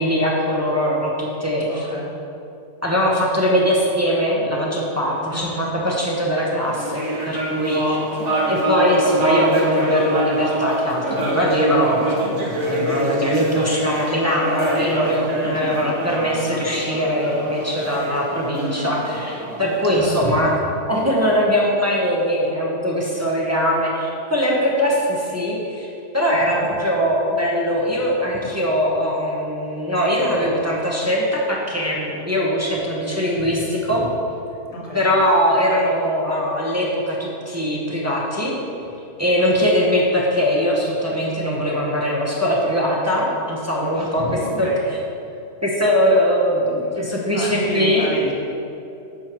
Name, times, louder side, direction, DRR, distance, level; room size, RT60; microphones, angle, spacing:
voice 1, 0.0-1.9 2.8-8.0 8.5-12.1 12.6-20.5 20.9-34.0 34.9-38.5 39.2-44.2 44.6-44.7 45.6-48.1, equal, 15° right, -4 dB, 0.8 m, -21 dB
voice 2, 1.7-2.2 5.3-5.7 15.5-15.8 19.9-20.5 26.3-26.7 28.4-28.5 33.5-33.6 33.9-34.1 34.7-35.1 39.4-39.7 43.9-44.8 45.3-45.4 47.3-48.3, left 1 dB, 30° left, -5 dB, 1.4 m, -31 dB
sound 1, 6.6-20.3, right 1 dB, 70° right, 1.6 m, -25 dB
9.4 x 6.4 x 3.0 m, 2.8 s
omnidirectional pair, 1.3 m